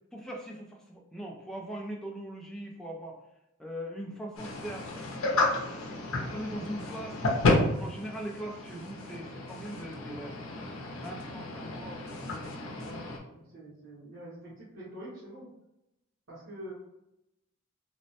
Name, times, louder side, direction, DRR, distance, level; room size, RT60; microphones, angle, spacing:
voice 1, 0.1-3.2 3.6-5.4 5.7-7.2 7.5-10.4 10.9-11.8, right 1 dB, 5° left, -1 dB, 0.3 m, -41 dB
sound 1, 4.4-13.2, left 2 dB, 80° left, 0.6 m, -32 dB
voice 2, 12.7-15.5 16.3-16.7, right 1 dB, 85° right, -10 dB, 1.1 m, -46 dB
3.1 x 2.1 x 2.7 m, 0.88 s
head